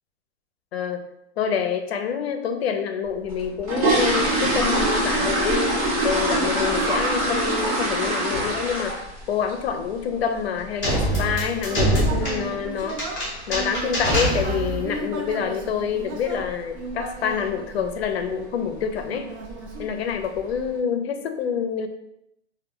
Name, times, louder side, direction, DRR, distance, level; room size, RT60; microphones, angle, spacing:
voice 1, 0.7-1.1 1.4-13.0 13.5-19.3 19.8-21.9, left 7 dB, 65° left, 7 dB, 0.4 m, -27 dB
sound 1, 3.3-9.2 9.5-9.8 10.1-10.2 10.6-10.7 11.1-11.3 11.6-11.7 12.3-12.4 12.6-12.8 13.3-13.6 13.9-14.0 14.4-14.6 14.9-15.0 15.4-15.5 16.1-16.5 16.8-17.1 17.5-17.6 18.0-18.1 18.9-19.0 19.4-19.9 20.3-20.4, right 1 dB, 30° right, 0.6 m, -23 dB
sound 2, 10.8-14.9, right 1 dB, 10° left, 0.6 m, -24 dB
Human voice, 11.1-18.4 19.0-20.5, right 3 dB, 70° right, 0.7 m, -36 dB
2.2 x 2.0 x 3.6 m, 0.83 s
hypercardioid pair, 175°, 34 cm